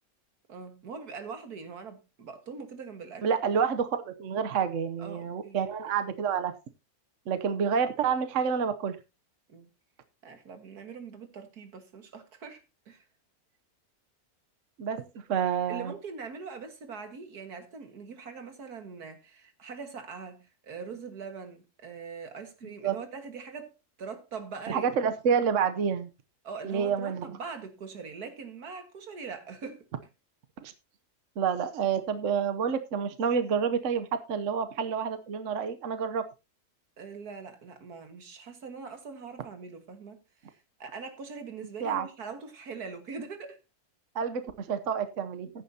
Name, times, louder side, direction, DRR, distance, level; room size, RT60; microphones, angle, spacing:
voice 1, 0.5-3.3 5.0-5.6 9.5-9.7 10.2-13.0 14.9-15.1 15.7-25.1 26.4-29.9 37.0-43.6, right 5 dB, 85° right, 2.2 m, -42 dB
voice 2, 3.2-6.5 7.3-9.0 14.8-15.0 15.3-15.9 22.8-22.9 24.7-26.1 26.6-27.4 30.6-30.7 31.4-36.2 41.8-42.1 44.1-45.5, right 7 dB, 60° right, 1.2 m, -28 dB
14.5 x 10.5 x 2.8 m
omnidirectional pair, 1.6 m